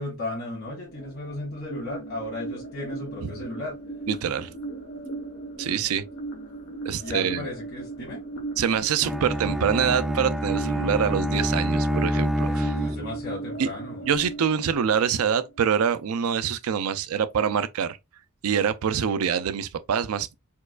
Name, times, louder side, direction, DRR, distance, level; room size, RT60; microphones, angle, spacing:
voice 1, 0.0-3.7 5.7-5.8 7.0-8.2 12.3-14.1, left 2 dB, 65° left, 1.3 m, -35 dB
sound 1, 0.9-15.8, right 3 dB, 80° left, 1.3 m, -38 dB
voice 2, 4.1-4.5 5.6-6.0 6.9-7.5 8.6-12.7 13.6-13.7 14.0-18.0 18.4-20.3, right 7 dB, 75° right, 0.4 m, -25 dB
Bowed string instrument, 9.0-13.4, equal, ahead, 0.3 m, -27 dB
4.4 x 2.3 x 2.2 m
head